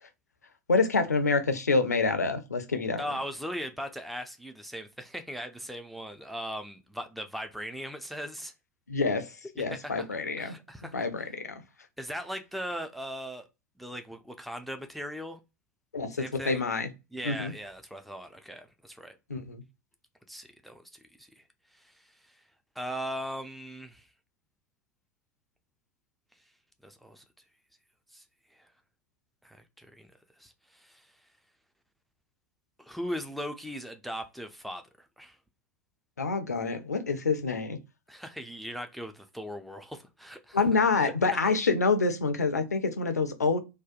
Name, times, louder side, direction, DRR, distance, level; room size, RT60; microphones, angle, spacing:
voice 1, 0.7-3.0 8.9-10.5 10.8-11.6 15.9-16.9 17.2-17.5 19.3-19.6 36.2-37.8 40.5-43.6, left 4 dB, 85° left, 0.4 m, -27 dB
voice 2, 3.0-8.5 9.6-10.1 10.4-11.0 12.0-13.4 13.8-15.4 16.1-16.6 17.1-19.1 20.3-21.4 21.7-21.9 22.8-24.1 26.8-27.2 28.1-28.2 28.6-28.7 29.4-30.1 30.4-31.1 32.8-34.8 35.2-35.4 38.1-40.6 41.0-41.1, equal, ahead, 0.3 m, -39 dB
2.6 x 2.1 x 2.4 m
figure-of-eight pair, 80°, 9 cm